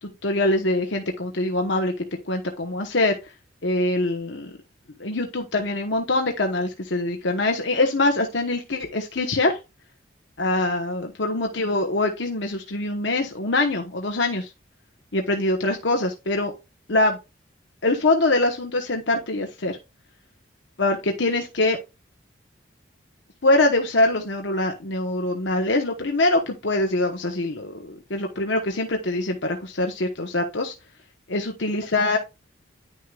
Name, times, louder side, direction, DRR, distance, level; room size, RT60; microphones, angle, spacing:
voice 1, 0.0-3.2 3.6-4.5 5.0-9.6 10.4-14.5 15.1-16.5 16.9-17.2 17.8-19.8 20.8-21.8 23.4-30.7 31.3-32.2, left 2 dB, 80° left, 3 dB, 1.1 m, -23 dB
10.5 x 6.4 x 2.4 m, 0.26 s
head